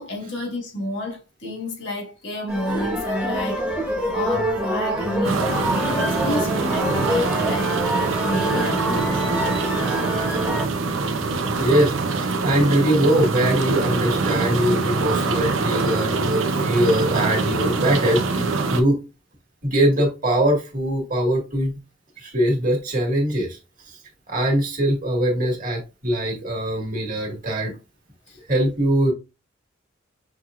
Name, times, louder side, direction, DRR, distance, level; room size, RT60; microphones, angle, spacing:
voice 1, 0.0-3.8 4.1-5.5 5.7-9.4 28.3-28.4, left 1 dB, 65° left, 1.7 m, -30 dB
sound 1, 2.5-10.7, right 1 dB, 5° right, 1.2 m, -25 dB
sound 2, 5.2-18.8, right 3 dB, 80° right, 0.7 m, -24 dB
voice 2, 11.6-19.0 19.6-21.7 22.2-23.6 23.8-23.9 24.3-27.8 28.5-29.1, right 1 dB, 45° right, 1.8 m, -22 dB
6.2 x 3.0 x 2.5 m
head